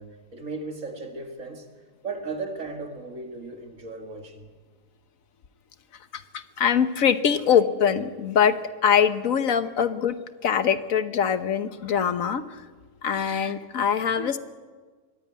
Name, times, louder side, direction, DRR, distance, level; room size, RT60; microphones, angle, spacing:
voice 1, 0.0-4.5, right 3 dB, 55° right, 2.2 m, -36 dB
voice 2, 6.1-8.6 8.8-10.2 10.4-12.6 13.0-14.4, left 8 dB, 65° left, 1.4 m, -23 dB
23.5 x 16.0 x 9.5 m
omnidirectional pair, 1.6 m